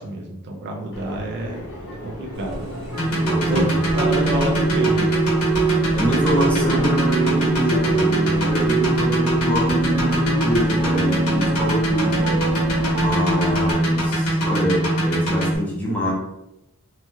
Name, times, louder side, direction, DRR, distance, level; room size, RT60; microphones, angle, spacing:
voice 1, 0.0-2.7 3.4-5.3, right 1 dB, 50° right, 0 dB, 0.5 m, -28 dB
Subway metro underground, 0.9-14.1, left 1 dB, 55° left, 0.6 m, -36 dB
sound 1, 2.3-13.7, right 4 dB, 75° right, 1.0 m, -26 dB
sound 2, 3.0-15.6, right 1 dB, 75° left, 1.1 m, -22 dB
voice 2, 3.1-3.8 5.9-12.4 12.9-16.1, equal, 5° left, -4 dB, 0.7 m, -25 dB
3.0 x 2.3 x 2.6 m, 0.89 s
head